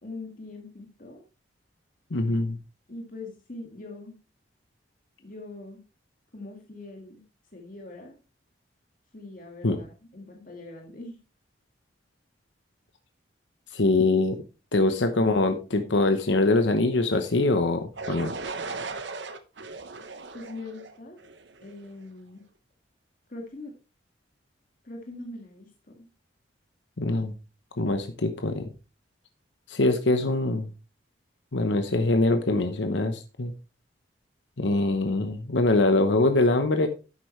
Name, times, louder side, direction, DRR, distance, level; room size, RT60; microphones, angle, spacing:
voice 1, 0.0-1.2 2.9-4.2 5.2-5.8 6.3-7.2 7.5-8.2 9.1-11.2 14.8-15.4 20.3-21.2 21.6-22.4 23.3-23.7 24.8-26.1, left 2 dB, 45° left, 1 dB, 1.9 m, -42 dB
voice 2, 2.1-2.6 9.6-9.8 13.7-14.4 14.7-18.3 27.0-27.3 27.8-28.7 29.7-30.7 31.5-33.5 34.6-36.9, left 2 dB, 75° left, 7 dB, 1.0 m, -23 dB
sound 1, 18.0-21.9, right 3 dB, 70° right, 1.0 m, -37 dB
11.0 x 8.4 x 3.2 m, 0.31 s
head